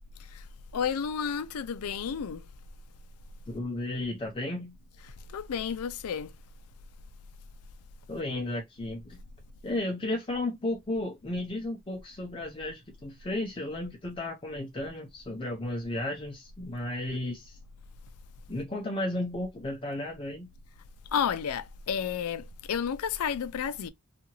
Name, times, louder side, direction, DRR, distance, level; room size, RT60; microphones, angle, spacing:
voice 1, 0.7-2.4 5.3-6.3 21.1-23.9, left 7 dB, 80° left, 0.4 m, -31 dB
voice 2, 3.5-4.8 8.1-9.2 9.6-17.6 18.5-20.5, left 1 dB, 25° left, 0.5 m, -34 dB
2.7 x 2.4 x 2.9 m
head